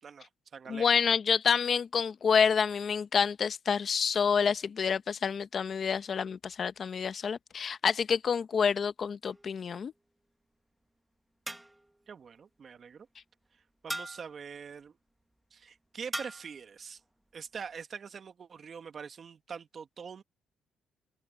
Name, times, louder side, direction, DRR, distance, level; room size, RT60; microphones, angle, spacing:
voice 1, 0.0-0.9 12.1-13.1 13.8-15.0 15.5-17.0 17.3-20.2, right 6 dB, 50° right, 1.6 m, -44 dB
voice 2, 0.7-9.9, left 6 dB, 50° left, 1.0 m, -28 dB
sound 1, 9.3-9.8 11.5-12.0 13.9-14.4 16.1-16.6, right 1 dB, 10° right, 1.3 m, -40 dB
open air
cardioid pair, 90°, 0 cm